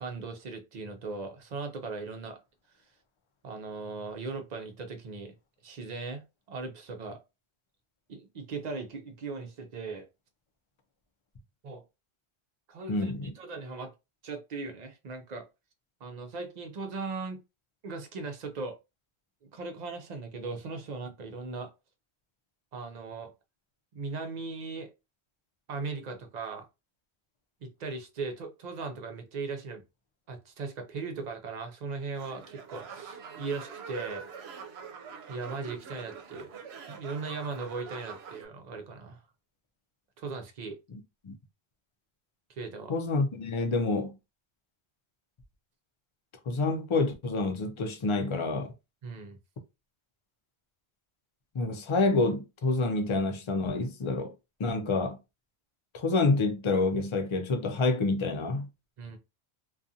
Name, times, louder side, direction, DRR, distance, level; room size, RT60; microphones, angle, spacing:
voice 1, 0.0-2.4 3.4-5.3 5.6-6.2 6.5-7.2 8.1-10.1 11.6-11.8 12.7-13.9 14.2-15.5 16.0-17.4 17.8-18.8 19.5-21.7 22.7-23.3 23.9-24.9 25.7-26.7 27.6-29.8 30.3-34.2 35.3-36.5 36.9-39.2 40.2-40.8 42.5-42.9 49.0-49.4 59.0-59.2, right 4 dB, 55° right, 0.5 m, -38 dB
voice 2, 12.9-13.3 40.9-41.3 42.9-44.2 46.5-48.7 51.5-54.3 54.6-55.2 55.9-58.7, left 3 dB, 45° left, 0.4 m, -28 dB
sound 1, 32.1-38.4, right 6 dB, 75° right, 0.8 m, -44 dB
2.4 x 2.3 x 2.6 m
omnidirectional pair, 1.1 m